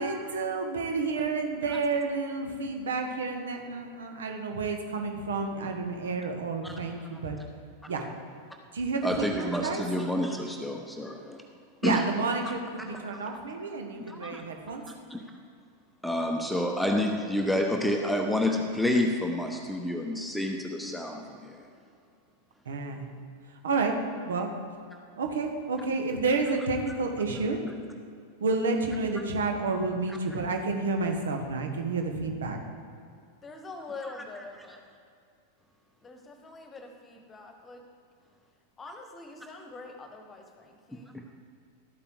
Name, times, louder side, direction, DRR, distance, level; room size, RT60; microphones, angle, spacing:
voice 1, 0.0-7.4 7.9-8.0 8.7-9.8 11.8-14.8 22.6-23.0 23.6-23.9 24.3-24.5 25.2-27.6 28.4-32.6, right 3 dB, 65° right, 4 dB, 1.4 m, -30 dB
voice 2, 9.0-11.4 11.8-12.1 12.4-12.5 12.9-13.0 14.0-14.5 15.1-15.2 16.0-21.7 40.9-41.2, left 1 dB, ahead, 3 dB, 0.8 m, -29 dB
voice 3, 33.4-34.8 36.0-37.8 38.8-41.1, left 3 dB, 20° left, 5 dB, 1.3 m, -44 dB
12.5 x 8.7 x 4.7 m, 2.3 s
figure-of-eight pair, 90°, 0 cm